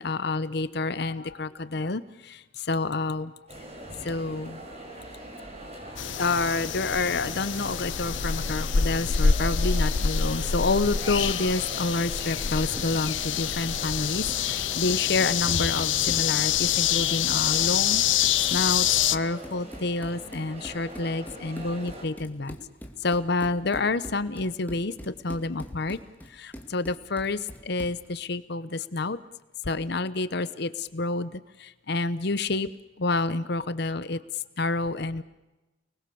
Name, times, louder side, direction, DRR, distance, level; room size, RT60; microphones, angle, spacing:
voice 1, 0.0-3.3 4.0-4.6 6.2-22.6 23.0-24.9 25.2-26.0 26.3-29.2 29.6-32.7 33.0-34.2 34.6-35.2, left 3 dB, 60° left, 14 dB, 0.9 m, -28 dB
sound 1, 3.5-22.0, right 1 dB, 35° right, 5.8 m, -42 dB
sound 2, 6.0-19.2, left 8 dB, 85° left, 0.8 m, -26 dB
Run, 12.2-28.1, equal, 10° left, 2.3 m, -44 dB
29.5 x 20.5 x 7.1 m, 1.0 s
head